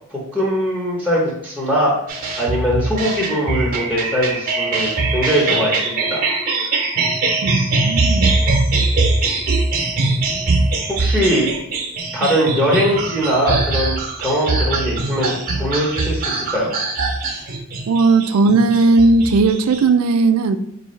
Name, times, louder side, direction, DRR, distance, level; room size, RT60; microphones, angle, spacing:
voice 1, 0.1-1.9 2.4-6.3 11.0-11.5 12.1-16.7, equal, 5° left, -6 dB, 0.7 m, -21 dB
sound 1, 2.1-19.8, right 3 dB, 45° right, 0.7 m, -21 dB
voice 2, 7.4-8.3 17.9-20.6, right 3 dB, 75° right, 10 dB, 0.3 m, -16 dB
4.6 x 2.6 x 3.1 m, 0.74 s
head